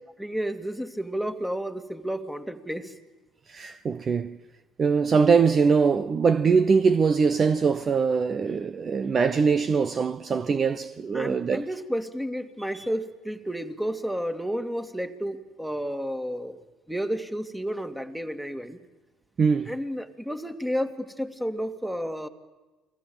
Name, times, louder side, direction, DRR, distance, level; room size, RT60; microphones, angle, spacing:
voice 1, 0.2-2.9 11.1-18.8 19.7-22.3, equal, 5° right, 2.5 m, -31 dB
voice 2, 3.5-4.4 4.8-11.7 12.8-12.9 19.4-19.8, right 5 dB, 35° right, 0.9 m, -22 dB
29.5 x 22.0 x 9.1 m
hypercardioid pair, 65°, 0 cm